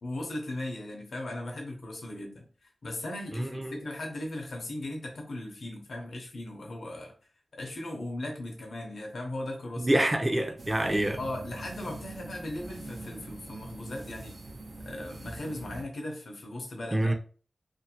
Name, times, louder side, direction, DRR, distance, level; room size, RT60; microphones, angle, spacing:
voice 1, 0.0-7.1 7.5-9.9 11.2-14.3 14.9-17.1, left 1 dB, 80° left, 0.6 m, -38 dB
voice 2, 3.3-3.8 9.8-11.2 16.9-17.1, right 1 dB, 25° right, 0.5 m, -26 dB
sound 1, 10.6-15.8, right 2 dB, 70° right, 0.5 m, -43 dB
2.5 x 2.0 x 2.8 m
cardioid pair, 55°, 0 cm